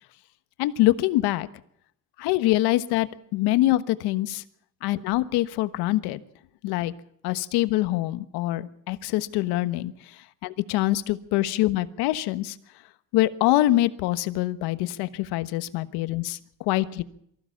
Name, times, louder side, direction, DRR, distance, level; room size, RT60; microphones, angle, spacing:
voice 1, 0.6-1.5 2.2-4.4 4.8-6.2 6.6-6.9 7.2-12.6 13.1-17.0, left 16 dB, 90° left, 13 dB, 1.3 m, -24 dB
24.0 x 15.0 x 7.2 m, 0.71 s
cardioid pair, 155°, 38 cm